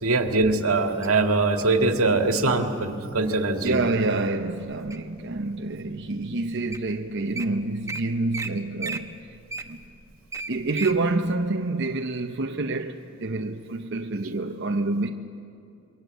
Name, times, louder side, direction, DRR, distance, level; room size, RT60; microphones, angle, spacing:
voice 1, 0.0-3.8, right 3 dB, 85° right, 2.0 m, -22 dB
Wild animals, 1.0-1.8 2.5-2.8 3.3-3.7 4.2-5.2 5.8-5.9 6.4-6.5 6.7-6.9 7.1-7.4 7.9-8.0 8.3-8.5 8.8-11.0 11.4-11.5, right 4 dB, 15° right, 1.0 m, -34 dB
voice 2, 3.6-9.1 9.7-9.8 10.5-15.1, right 2 dB, 55° right, 0.9 m, -27 dB
27.0 x 22.5 x 8.1 m
head